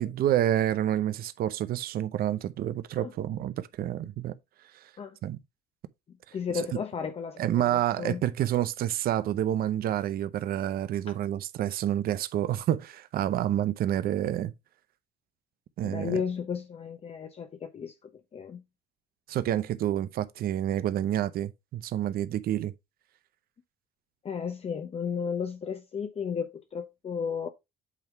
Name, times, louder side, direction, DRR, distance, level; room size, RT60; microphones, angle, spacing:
voice 1, 0.0-4.4 4.7-4.9 5.2-5.4 6.5-6.7 7.4-14.5 15.8-16.2 19.3-22.7, right 12 dB, 60° right, 0.7 m, -28 dB
voice 2, 6.3-8.2 15.8-17.9 18.3-18.6 24.2-27.5, left 6 dB, 35° left, 0.9 m, -34 dB
8.4 x 3.5 x 4.5 m
cardioid pair, 110°, 17 cm